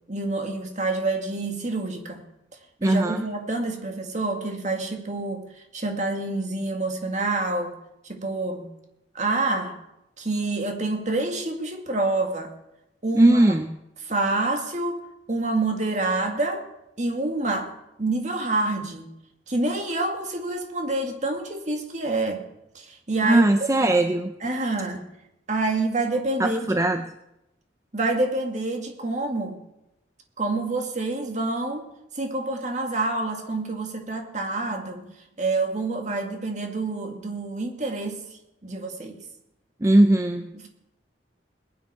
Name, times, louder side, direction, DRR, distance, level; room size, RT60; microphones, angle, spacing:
voice 1, 0.1-2.2 2.8-5.4 5.7-7.7 8.1-8.6 9.1-9.7 10.2-12.5 13.0-13.4 14.0-15.0 15.3-16.6 17.0-17.7 18.0-19.1 19.5-22.4 22.8-23.7 24.4-25.1 25.5-26.8 27.9-29.6 30.4-31.9 32.2-35.1 35.4-38.2 38.6-39.2 40.5-40.7, right 2 dB, 40° right, 3 dB, 2.0 m, -27 dB
voice 2, 2.8-3.2 13.2-13.7 23.2-24.3 26.4-27.1 39.8-40.5, right 1 dB, 20° right, 7 dB, 0.5 m, -19 dB
21.0 x 9.5 x 4.8 m, 0.88 s
head